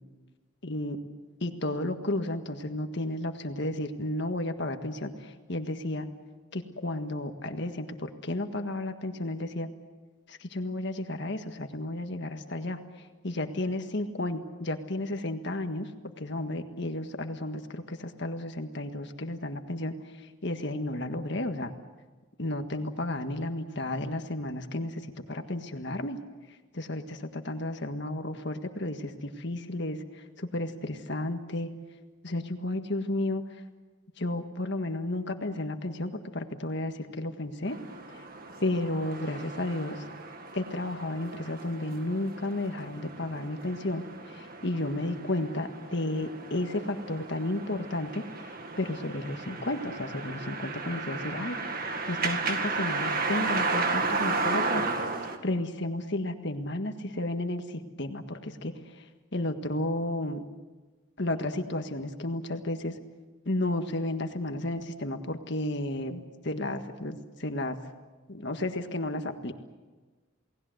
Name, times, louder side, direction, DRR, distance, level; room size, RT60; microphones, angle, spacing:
voice 1, 0.6-1.0 1.4-6.1 6.5-9.7 10.3-12.8 13.2-15.9 16.2-21.7 22.4-26.2 26.7-31.7 32.2-33.4 34.2-37.8 38.1-38.2 38.6-40.0 40.5-48.5 48.8-51.6 52.1-54.8 55.4-59.0 59.3-60.4 61.2-63.0 63.4-67.8 68.3-69.5, left 1 dB, 55° left, 6 dB, 1.7 m, -33 dB
sound 1, 37.7-55.4, right 3 dB, 45° right, 2.0 m, -34 dB
29.0 x 19.0 x 8.0 m, 1.3 s
head